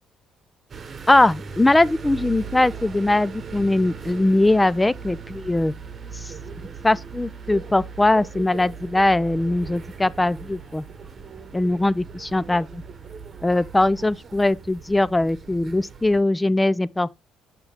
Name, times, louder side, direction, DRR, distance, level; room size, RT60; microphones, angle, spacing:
sound 1, 0.7-16.2, right 6 dB, 40° right, 1.0 m, -39 dB
voice 1, 1.1-5.7 6.1-6.3 6.8-10.8 11.5-12.8 13.4-17.1, left 2 dB, 15° left, 0.4 m, -21 dB
sound 2, 6.4-11.5, left 1 dB, 45° left, 1.8 m, -58 dB
6.6 x 5.8 x 3.4 m
cardioid pair, 85°, 0 cm